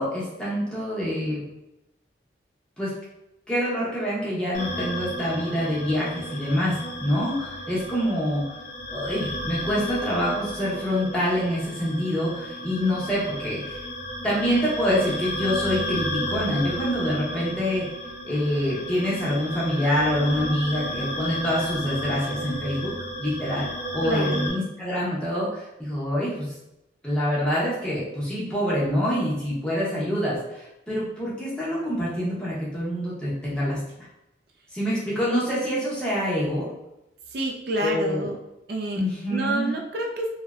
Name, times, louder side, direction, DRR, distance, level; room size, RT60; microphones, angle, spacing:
voice 1, 0.0-1.4 2.8-2.9 3.5-8.4 8.9-13.8 14.2-17.8 18.2-22.9 23.2-26.5 27.0-34.1 34.7-36.7 37.8-38.3 39.0-39.7, equal, 5° left, -8 dB, 0.7 m, -26 dB
sound 1, 4.5-24.5, equal, 50° left, 0.5 m, -33 dB
voice 2, 24.0-24.4 37.3-38.4 38.7-39.0 39.3-40.3, right 2 dB, 55° right, 1 dB, 0.3 m, -28 dB
2.6 x 2.0 x 2.3 m, 0.91 s
head